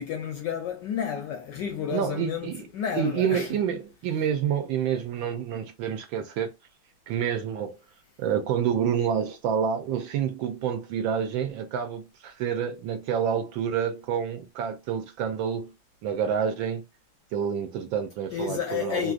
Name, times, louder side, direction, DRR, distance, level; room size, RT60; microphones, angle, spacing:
voice 1, 0.0-3.6 18.3-19.1, left 8 dB, 75° left, 1.0 m, -31 dB
voice 2, 1.9-2.6 2.9-6.5 7.1-7.8 8.2-15.7 16.0-16.8 17.3-19.1, right 8 dB, 75° right, 1.2 m, -28 dB
3.3 x 2.6 x 2.4 m
omnidirectional pair, 2.4 m